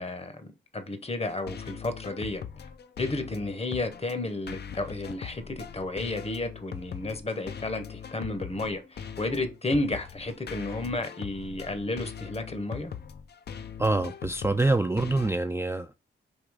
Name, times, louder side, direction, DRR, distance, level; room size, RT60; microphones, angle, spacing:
voice 1, 0.0-2.4 3.0-12.9, left 2 dB, 30° left, 0.9 m, -32 dB
sound 1, 1.3-15.3, left 7 dB, 55° left, 0.5 m, -41 dB
voice 2, 13.8-15.9, right 2 dB, 15° right, 0.3 m, -25 dB
3.7 x 2.9 x 4.7 m
cardioid pair, 65°, 20 cm